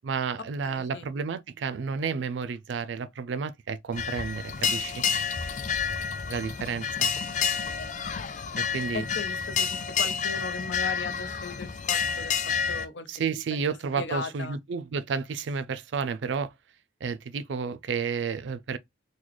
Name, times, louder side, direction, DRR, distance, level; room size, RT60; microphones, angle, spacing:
voice 1, 0.0-5.0 6.3-7.1 8.5-9.0 13.1-16.5 17.0-18.8, right 5 dB, 85° right, 0.4 m, -31 dB
voice 2, 0.6-1.1 7.6-7.9 8.9-12.3 12.7-13.1 13.5-13.6 14.0-14.6, left 4 dB, 80° left, 0.7 m, -37 dB
sound 1, 3.9-12.9, left 6 dB, 40° left, 0.4 m, -29 dB
3.9 x 2.2 x 3.0 m
head